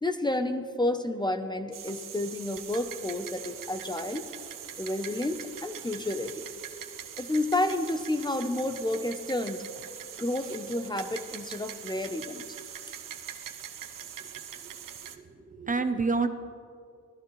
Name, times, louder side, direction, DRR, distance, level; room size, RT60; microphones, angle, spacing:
voice 1, 0.0-4.3 4.8-6.4 7.2-9.6 10.2-12.4, left 1 dB, 15° left, 8 dB, 0.7 m, -30 dB
sound 1, 1.7-15.2, right 9 dB, 80° right, 1.0 m, -42 dB
voice 2, 15.2-16.3, right 4 dB, 25° right, 9 dB, 0.7 m, -28 dB
24.5 x 16.0 x 3.2 m, 2.3 s
wide cardioid pair, 140°, 32 cm